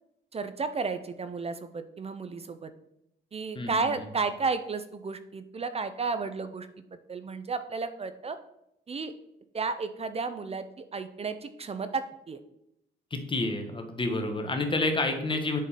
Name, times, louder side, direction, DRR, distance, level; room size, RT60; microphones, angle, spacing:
voice 1, 0.3-2.7 3.3-6.7 7.1-8.4 8.9-9.1 9.5-12.4, right 4 dB, 30° right, 10 dB, 0.5 m, -33 dB
voice 2, 3.5-3.9 13.1-15.6, left 2 dB, 25° left, 5 dB, 1.2 m, -29 dB
8.3 x 3.8 x 4.1 m, 0.80 s
cardioid pair, 90°, 20 cm